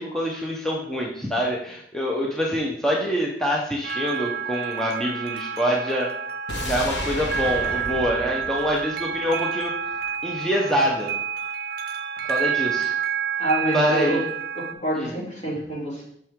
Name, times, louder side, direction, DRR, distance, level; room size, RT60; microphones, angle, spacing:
voice 1, 0.0-6.1 6.6-9.7 10.2-11.1 12.2-12.9 13.7-14.2 15.0-15.1, equal, 5° left, -3 dB, 0.8 m, -25 dB
sound 1, 3.8-14.7, right 7 dB, 60° right, 0.6 m, -29 dB
sound 2, 6.5-9.6 9.9-10.0, left 1 dB, 75° left, 1.2 m, -33 dB
voice 2, 13.4-14.2 14.5-16.0, right 1 dB, 40° left, -5 dB, 2.9 m, -26 dB
7.5 x 5.9 x 3.6 m, 0.70 s
head